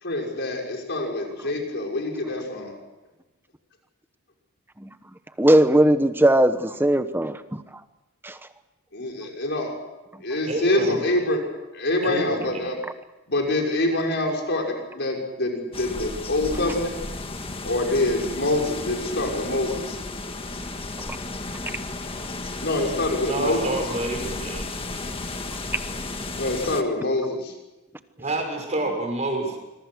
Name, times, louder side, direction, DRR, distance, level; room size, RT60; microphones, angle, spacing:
voice 1, 0.0-2.7 8.9-9.7 10.2-11.4 11.7-12.7 13.3-17.0 17.6-20.0 22.6-23.8 26.4-27.5, left 2 dB, 55° left, 1 dB, 6.2 m, -25 dB
voice 2, 5.4-7.6 8.2-8.4, right 1 dB, 10° right, 10 dB, 1.1 m, -19 dB
voice 3, 10.5-11.2 12.0-12.8 23.2-24.7 28.2-29.6, right 2 dB, 30° right, 3 dB, 6.1 m, -28 dB
sound 1, 15.7-26.8, left 2 dB, 25° left, 1.7 m, -33 dB
26.0 x 23.0 x 6.4 m, 1.0 s
head